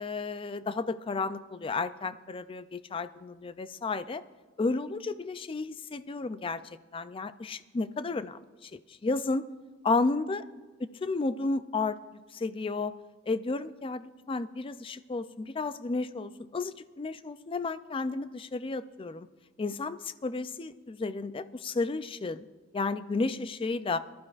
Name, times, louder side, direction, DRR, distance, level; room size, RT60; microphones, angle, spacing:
voice 1, 0.0-4.2 4.6-6.6 6.9-9.4 9.8-10.4 11.0-12.9 13.3-19.3 19.6-22.5 22.7-24.0, left 3 dB, 25° left, 13 dB, 0.4 m, -32 dB
21.0 x 12.0 x 2.5 m, 1.3 s
head